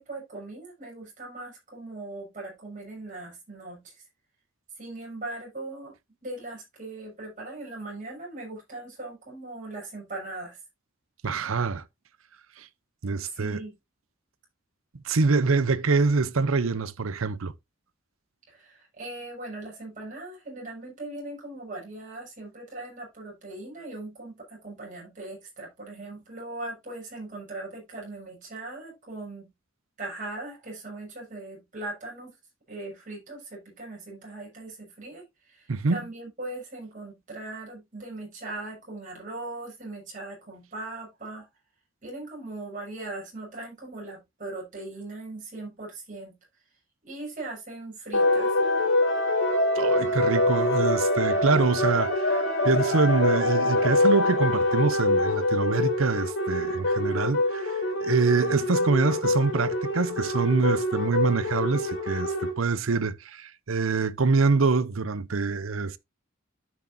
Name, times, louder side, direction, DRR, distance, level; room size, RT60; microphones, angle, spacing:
voice 1, 0.0-3.9 4.8-5.9 6.2-10.6 13.3-13.7 18.5-29.5 30.0-32.3 32.7-41.5 42.0-46.3 47.0-48.5, right 2 dB, 40° right, 6.4 m, -39 dB
voice 2, 11.2-11.8 12.6-12.7 13.0-13.6 15.0-17.5 35.7-36.0 49.8-66.0, right 4 dB, 85° right, 0.7 m, -25 dB
sound 1, 48.1-62.5, left 1 dB, 65° left, 2.8 m, -25 dB
12.5 x 6.1 x 2.7 m
head